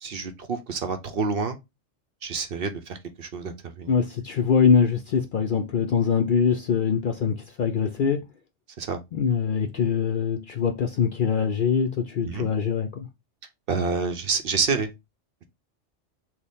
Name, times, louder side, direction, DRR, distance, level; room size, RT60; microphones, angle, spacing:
voice 1, 0.0-1.6 2.2-3.9 8.8-9.0 12.2-12.5 13.7-14.9, right 4 dB, 60° right, 0.7 m, -28 dB
voice 2, 3.9-8.2 9.1-13.1, left 6 dB, 60° left, 0.5 m, -23 dB
6.3 x 2.2 x 3.5 m
omnidirectional pair, 1.3 m